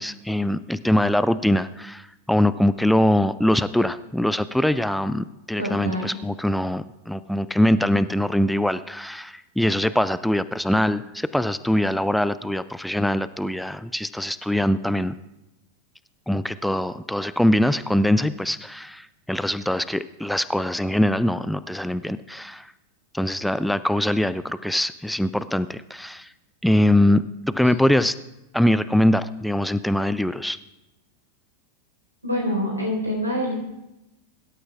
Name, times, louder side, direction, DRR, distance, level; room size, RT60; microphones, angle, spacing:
voice 1, 0.0-15.1 16.3-22.7 23.1-26.3 26.6-27.2 27.5-28.2 28.5-30.6, left 1 dB, ahead, 14 dB, 0.3 m, -22 dB
voice 2, 5.6-6.1 32.2-33.5, equal, 85° right, -2 dB, 4.4 m, -25 dB
23.0 x 12.5 x 2.4 m, 0.95 s
figure-of-eight pair, 90°, 0 cm